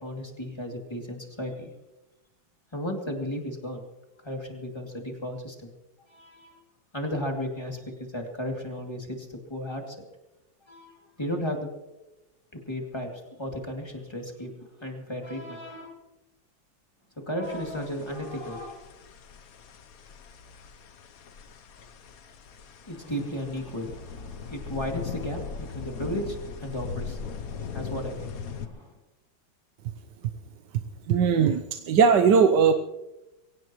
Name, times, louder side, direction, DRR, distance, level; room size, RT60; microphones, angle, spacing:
voice 1, 0.0-1.7 2.7-3.8 4.2-5.7 6.1-6.6 6.9-10.0 10.6-11.7 12.5-14.5 14.8-16.0 17.2-18.8 22.8-29.0, equal, 15° left, 1 dB, 2.7 m, -35 dB
sound 1, 17.4-28.7, left 5 dB, 55° left, 1.2 m, -40 dB
voice 2, 31.1-32.7, right 6 dB, 65° right, 8 dB, 1.4 m, -19 dB
23.5 x 17.5 x 3.1 m, 1.0 s
omnidirectional pair, 2.1 m